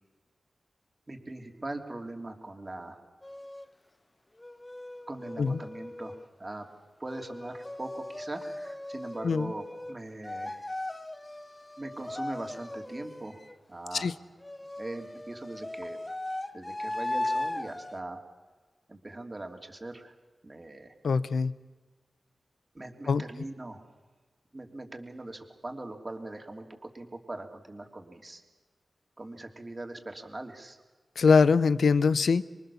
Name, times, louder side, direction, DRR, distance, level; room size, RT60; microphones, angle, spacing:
voice 1, 1.1-3.0 5.1-6.7 7.0-10.7 11.8-13.4 13.7-14.1 14.8-16.0 16.5-18.2 18.9-20.1 20.4-20.9 22.7-23.8 24.5-28.4 29.2-30.8, right 2 dB, 30° right, 3 dB, 3.2 m, -41 dB
sound 1, 3.2-3.7 4.4-6.3 7.1-9.9 10.2-13.5 14.4-18.0, left 1 dB, 20° left, 1.0 m, -38 dB
voice 2, 21.0-21.5 23.1-23.2 31.2-32.4, left 5 dB, 80° left, 16 dB, 0.8 m, -23 dB
26.5 x 23.0 x 7.2 m, 1.3 s
cardioid pair, 60°, 0 cm